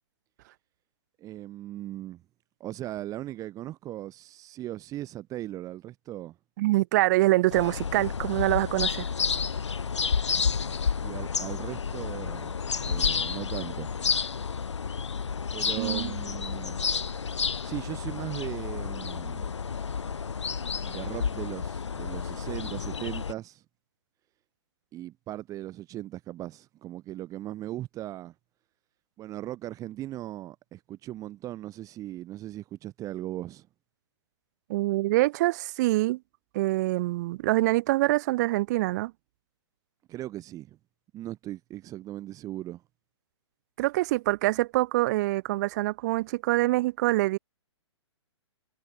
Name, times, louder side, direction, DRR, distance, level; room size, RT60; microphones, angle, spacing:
voice 1, 1.2-2.2 2.6-6.4 11.0-12.6 12.8-13.9 15.5-16.8 17.6-19.6 20.9-23.6 24.9-28.3 29.2-33.7 40.1-40.8 41.1-42.8, right 14 dB, 20° right, 5.5 m, -38 dB
voice 2, 6.6-9.1 15.8-16.1 34.7-36.2 36.5-39.1 43.8-47.4, right 18 dB, 35° right, 1.8 m, -25 dB
sound 1, 7.5-23.3, left 6 dB, 70° left, 0.8 m, -30 dB
figure-of-eight pair, 120°, 15 cm